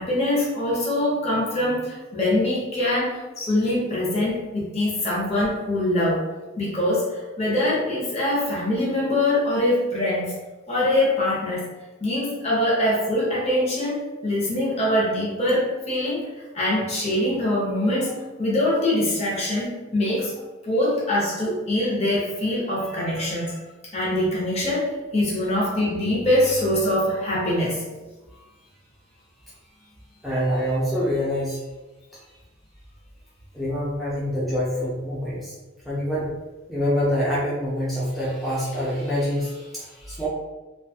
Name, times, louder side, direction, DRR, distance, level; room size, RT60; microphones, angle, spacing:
voice 1, 0.0-6.2 6.6-10.3 10.7-11.6 12.0-16.2 16.5-18.1 18.4-20.3 20.6-23.6 23.9-27.8, left 1 dB, 30° left, -6 dB, 0.7 m, -23 dB
voice 2, 30.2-31.7 33.5-35.5 35.8-36.3 36.7-40.3, equal, ahead, -9 dB, 0.4 m, -26 dB
2.6 x 2.3 x 2.7 m, 1.2 s
head